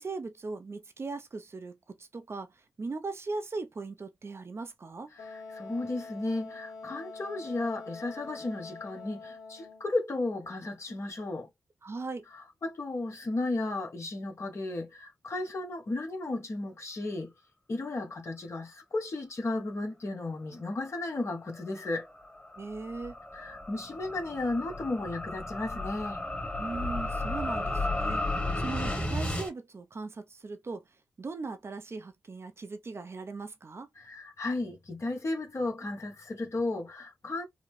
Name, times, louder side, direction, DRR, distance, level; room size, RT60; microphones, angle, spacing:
voice 1, 0.0-5.1 11.8-12.3 22.6-23.1 26.6-33.9, right 3 dB, 45° right, 0.6 m, -39 dB
voice 2, 5.1-11.5 12.3-17.3 17.7-22.1 23.3-26.2 34.0-37.5, left 2 dB, 50° left, 1.3 m, -34 dB
Wind instrument woodwind instrument, 5.2-9.9, left 3 dB, 90° left, 1.0 m, -45 dB
sound 1, 21.7-29.5, left 2 dB, 25° left, 1.6 m, -33 dB
3.7 x 2.2 x 3.2 m
supercardioid pair, 45°, 6 cm